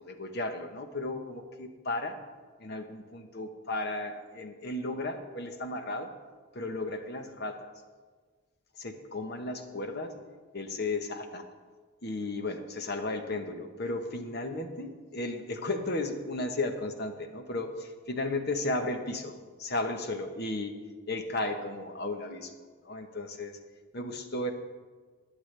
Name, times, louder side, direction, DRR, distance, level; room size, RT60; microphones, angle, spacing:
voice 1, 0.0-2.2 2.6-6.1 6.5-7.7 8.8-10.1 10.5-11.5 12.0-20.8 21.1-22.6 22.8-23.6 23.9-24.5, left 2 dB, 50° left, 6 dB, 1.0 m, -34 dB
20.0 x 7.9 x 3.3 m, 1.5 s
head